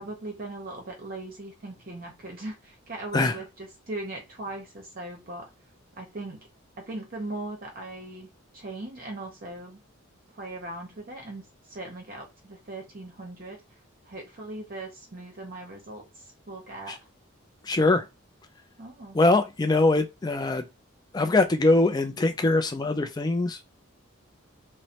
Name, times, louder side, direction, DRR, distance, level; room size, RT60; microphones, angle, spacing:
voice 1, 0.0-5.5 5.9-6.4 6.8-9.8 10.3-13.6 14.0-17.1 18.8-19.2, right 2 dB, 40° right, 0.7 m, -39 dB
voice 2, 17.6-18.1 19.1-20.7 21.1-23.7, left 2 dB, 20° left, 0.3 m, -22 dB
3.0 x 2.0 x 2.8 m
head